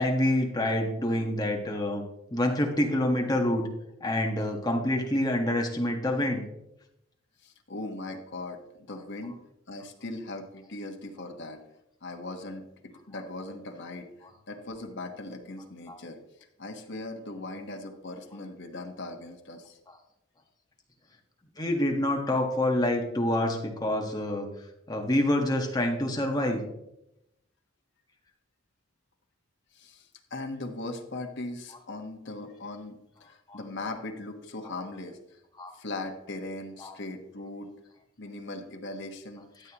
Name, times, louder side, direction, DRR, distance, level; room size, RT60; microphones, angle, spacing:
voice 1, 0.0-2.0 2.3-3.7 4.0-6.4 15.9-16.0 21.6-24.5 24.9-26.6 33.5-33.6 35.6-35.7 36.8-36.9, left 1 dB, 20° left, 1 dB, 1.5 m, -27 dB
voice 2, 7.4-9.4 9.7-11.6 12.0-14.1 14.5-16.2 16.6-19.8 29.7-35.4 35.7-37.7 38.2-39.4, left 2 dB, 55° left, 4 dB, 1.4 m, -39 dB
13.5 x 8.3 x 3.0 m, 0.84 s
head